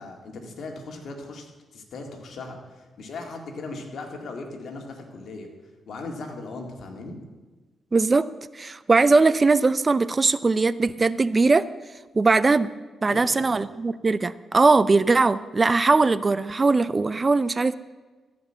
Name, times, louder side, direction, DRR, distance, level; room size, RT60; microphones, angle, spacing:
voice 1, 0.0-5.5 5.9-7.2 13.1-13.6, left 3 dB, 70° left, 3 dB, 2.0 m, -38 dB
voice 2, 7.9-8.3 8.5-11.6 12.1-12.7 13.0-17.7, right 3 dB, 30° right, 16 dB, 0.4 m, -20 dB
14.5 x 5.2 x 7.5 m, 1.3 s
cardioid pair, 70°, 0 cm